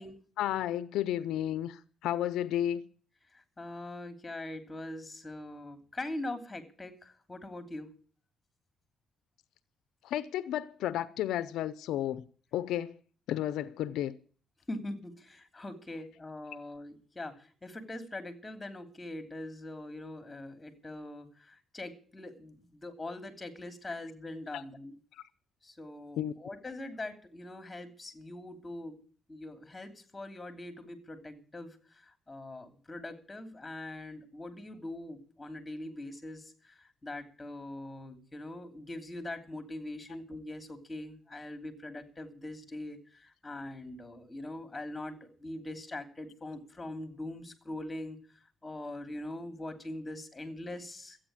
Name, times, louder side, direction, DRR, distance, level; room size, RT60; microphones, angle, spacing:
voice 1, 0.4-2.8 10.0-12.2 12.5-13.0 13.3-14.2 24.5-24.6 25.1-25.2 26.2-26.3, left 12 dB, 85° left, 0.6 m, -32 dB
voice 2, 3.3-7.9 14.7-25.0 25.6-29.0 29.3-48.2 48.6-51.2, left 1 dB, 20° left, 3.0 m, -42 dB
13.5 x 9.0 x 8.8 m
cardioid pair, 90°, 0 cm